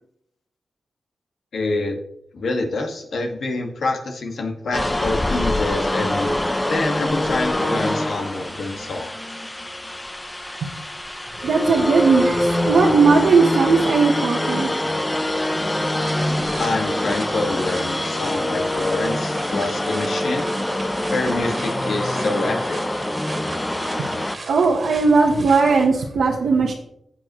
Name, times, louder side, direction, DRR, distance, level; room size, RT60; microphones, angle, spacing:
voice 1, 1.5-2.0 2.3-6.3 6.7-9.4 16.6-20.5 21.1-23.0, left 3 dB, 75° left, 3 dB, 1.8 m, -26 dB
sound 1, 4.7-24.4, left 1 dB, 15° left, 0.8 m, -24 dB
voice 2, 11.4-14.7 24.0-24.1 24.4-26.7, right 4 dB, 90° right, -2 dB, 1.1 m, -18 dB
sound 2, 16.1-25.9, right 2 dB, 45° right, 1.9 m, -38 dB
14.0 x 8.3 x 3.1 m, 0.76 s
cardioid pair, 65°, 0 cm